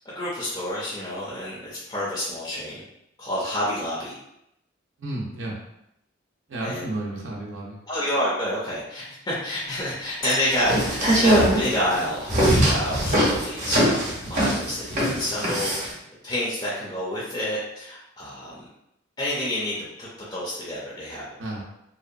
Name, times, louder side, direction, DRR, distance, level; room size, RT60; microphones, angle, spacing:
voice 1, 0.1-2.8 3.2-4.1 6.6-6.9 7.9-15.9 16.2-18.5 19.2-21.2, left 1 dB, 20° left, -7 dB, 0.5 m, -29 dB
voice 2, 5.0-5.5 6.5-7.8 21.4-21.6, right 1 dB, 85° right, -3 dB, 0.6 m, -32 dB
Chink clink, 9.6-11.5, equal, 90° left, 1.0 m, -37 dB
sound 1, 10.5-15.9, right 1 dB, 40° right, 0.7 m, -21 dB
2.7 x 2.1 x 2.4 m, 0.81 s
head